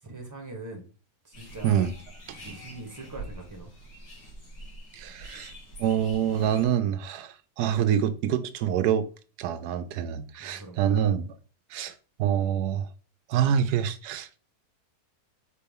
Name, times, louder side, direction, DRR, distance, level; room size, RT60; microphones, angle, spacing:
voice 1, 0.0-0.9 1.2-1.9 2.3-3.7 10.3-10.9, right 2 dB, 10° right, 1.4 m, -42 dB
sound 1, 1.3-6.7, right 1 dB, 75° left, 2.5 m, -45 dB
voice 2, 4.9-5.5 5.8-9.1 9.4-11.3 11.7-11.9 12.2-12.9 13.3-14.3, right 9 dB, 90° right, 1.2 m, -26 dB
4.6 x 4.3 x 5.4 m
omnidirectional pair, 1.7 m